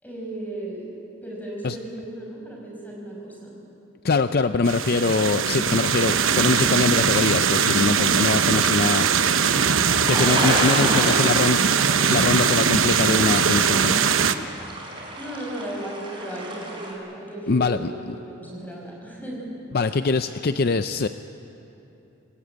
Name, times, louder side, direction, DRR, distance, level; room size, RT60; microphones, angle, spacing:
voice 1, 0.0-0.9 1.2-3.6 10.9-11.5 15.2-19.5, right 1 dB, 10° left, -2 dB, 5.7 m, -35 dB
voice 2, 4.0-9.1 10.1-11.6 12.1-14.0 17.5-18.1 19.7-21.1, left 3 dB, 50° left, 10 dB, 0.5 m, -23 dB
sound 1, 4.6-14.3, right 6 dB, 80° right, 1.0 m, -21 dB
sound 2, 9.3-16.9, right 1 dB, 25° right, 4.6 m, -31 dB
26.0 x 18.5 x 8.9 m, 2.9 s
head